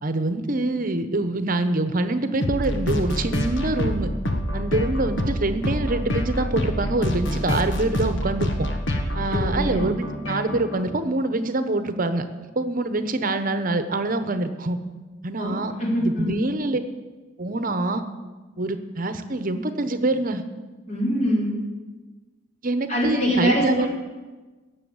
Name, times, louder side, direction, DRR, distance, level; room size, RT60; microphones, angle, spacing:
voice 1, 0.0-4.1 4.5-8.5 9.1-12.2 12.6-14.8 15.2-15.7 16.0-16.8 17.4-18.0 18.6-20.4 22.6-23.9, right 2 dB, 45° right, 10 dB, 1.0 m, -25 dB
sound 1, 2.4-10.8, left 1 dB, 70° left, 1.4 m, -26 dB
voice 2, 9.3-9.9 15.4-16.3 20.9-21.5 22.9-23.9, equal, 35° left, -2 dB, 3.7 m, -24 dB
17.5 x 7.1 x 7.2 m, 1.3 s
head